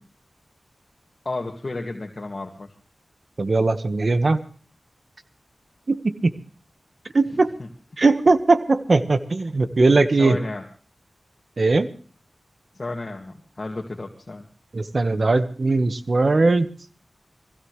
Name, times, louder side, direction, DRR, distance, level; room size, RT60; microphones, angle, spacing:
voice 1, 1.3-2.7 7.6-7.7 10.1-10.6 12.7-14.5, left 2 dB, 50° left, 1 dB, 2.0 m, -32 dB
voice 2, 3.4-4.4 5.9-6.3 7.1-7.5 8.0-10.4 11.6-11.9 14.7-16.7, right 3 dB, 60° right, 10 dB, 1.4 m, -19 dB
23.0 x 16.0 x 3.2 m, 0.39 s
cardioid pair, 40°, 0 cm